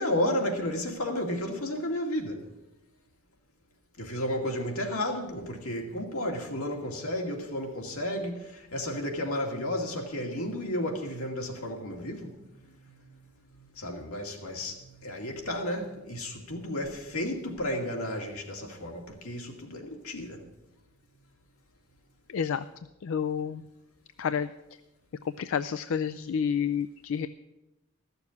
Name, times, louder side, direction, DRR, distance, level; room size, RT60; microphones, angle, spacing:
voice 1, 0.0-2.4 4.0-13.0 13.5-20.4, left 1 dB, 85° left, 2.3 m, -33 dB
voice 2, 22.3-22.6 23.0-23.6 24.2-24.5 25.4-27.3, left 7 dB, 65° left, 0.4 m, -29 dB
14.0 x 6.9 x 8.2 m
head